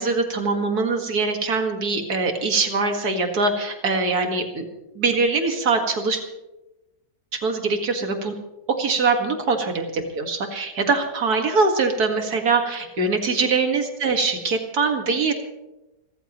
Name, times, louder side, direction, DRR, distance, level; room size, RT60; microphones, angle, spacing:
voice 1, 0.0-4.7 5.0-6.2 7.4-8.3 8.8-15.3, right 4 dB, 60° right, 4 dB, 2.3 m, -23 dB
28.0 x 14.0 x 3.1 m, 1.0 s
omnidirectional pair, 1.9 m